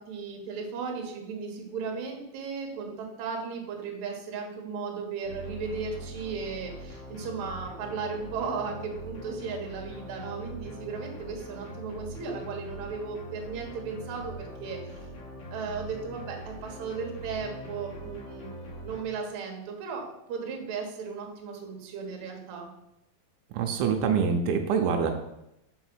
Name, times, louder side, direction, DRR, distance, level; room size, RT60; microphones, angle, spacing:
voice 1, 0.0-15.0 15.5-18.6 18.8-22.7, right 5 dB, 60° right, 1 dB, 2.2 m, -36 dB
sound 1, 5.2-19.0, equal, 60° left, 2.7 m, -42 dB
voice 2, 23.5-25.1, right 6 dB, 85° right, 4 dB, 2.6 m, -25 dB
5.6 x 4.7 x 6.1 m, 0.85 s
omnidirectional pair, 4.2 m